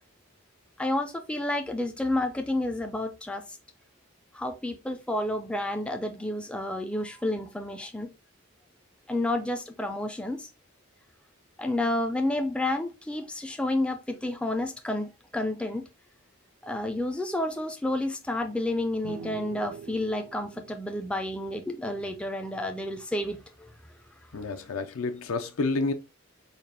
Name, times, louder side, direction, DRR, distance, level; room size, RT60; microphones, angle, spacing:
voice 1, 0.8-3.6 4.3-8.1 9.1-10.5 11.6-15.8 16.6-23.7, left 1 dB, 5° left, 0.3 m, -30 dB
sound 1, 19.0-22.6, right 6 dB, 65° right, 0.4 m, -45 dB
voice 2, 24.3-25.9, left 3 dB, 85° left, 0.6 m, -29 dB
4.0 x 2.4 x 3.3 m
head